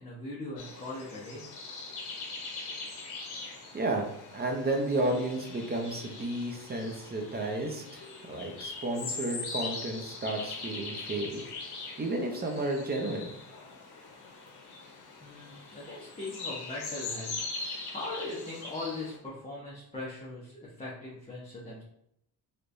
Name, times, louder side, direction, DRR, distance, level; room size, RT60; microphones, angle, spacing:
voice 1, 0.0-1.5 14.7-21.8, left 2 dB, 15° left, -7 dB, 0.9 m, -40 dB
sound 1, 0.6-19.2, left 3 dB, 75° left, 0.9 m, -41 dB
voice 2, 3.7-4.1 4.3-11.4 12.0-13.3, right 2 dB, 25° right, 2 dB, 0.7 m, -32 dB
3.3 x 3.1 x 2.6 m, 0.76 s
cardioid pair, 90°, 40 cm